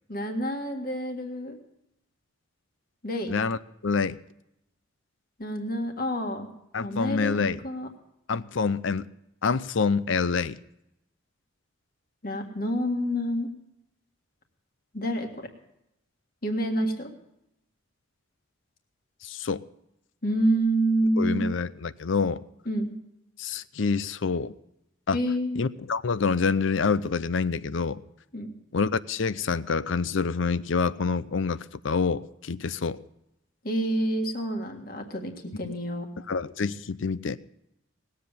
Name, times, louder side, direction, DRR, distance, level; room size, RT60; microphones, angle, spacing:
voice 1, 0.1-1.6 3.0-3.3 5.4-6.5 6.8-7.4 7.6-7.9 12.2-13.5 14.9-15.3 16.4-17.1 20.2-21.5 22.7-22.9 25.1-25.6 28.3-28.5 33.6-36.1, right 1 dB, 45° left, 1.7 m, -28 dB
voice 2, 3.3-4.2 6.7-7.6 8.3-9.1 9.4-10.6 19.2-19.6 21.2-22.4 23.4-24.5 25.1-25.2 25.6-28.0 28.7-33.0 35.6-35.7 36.3-37.4, left 5 dB, 70° left, 0.6 m, -27 dB
19.0 x 7.9 x 6.9 m
head